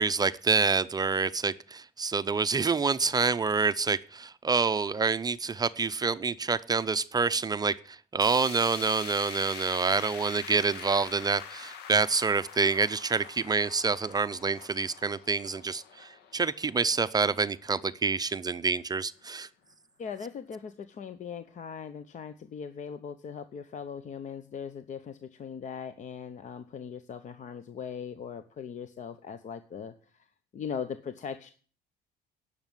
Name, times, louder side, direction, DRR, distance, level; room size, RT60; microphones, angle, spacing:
voice 1, 0.0-19.5, right 4 dB, 25° right, 13 dB, 0.5 m, -27 dB
sound 1, 8.2-18.4 18.8-18.9 19.2-19.3 20.2-20.3, left 7 dB, 80° left, 1.5 m, -45 dB
voice 2, 20.0-29.9 30.5-31.5, left 7 dB, 45° left, 11 dB, 0.8 m, -39 dB
10.5 x 6.7 x 9.1 m, 0.41 s
cardioid pair, 110°, 17 cm